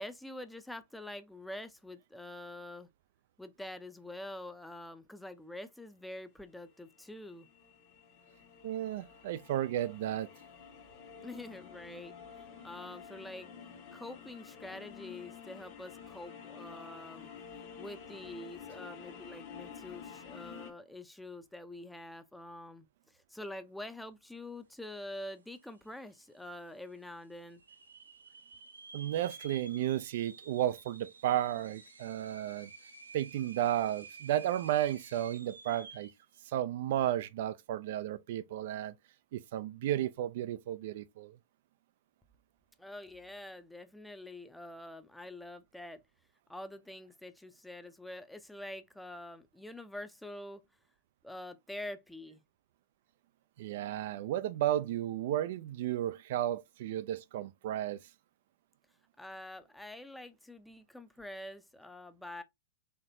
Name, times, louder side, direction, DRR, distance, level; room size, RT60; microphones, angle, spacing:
voice 1, 0.0-2.9 3.4-7.5 11.2-12.1 12.6-13.5 13.9-17.3 17.8-22.9 23.1-27.6 42.8-46.0 46.5-50.6 51.2-52.4 59.2-62.4, left 1 dB, 5° left, 0.6 m, -46 dB
sound 1, 6.7-20.7, left 7 dB, 50° left, 1.3 m, -50 dB
voice 2, 8.6-10.3 28.9-32.7 33.1-36.1 36.4-38.9 39.3-41.4 53.6-58.0, right 12 dB, 60° right, 0.3 m, -33 dB
sound 2, 25.3-25.4 25.6-26.2 26.7-26.8 27.5-36.2, right 4 dB, 90° right, 0.8 m, -51 dB
4.2 x 3.0 x 2.6 m
hypercardioid pair, 105°, 0 cm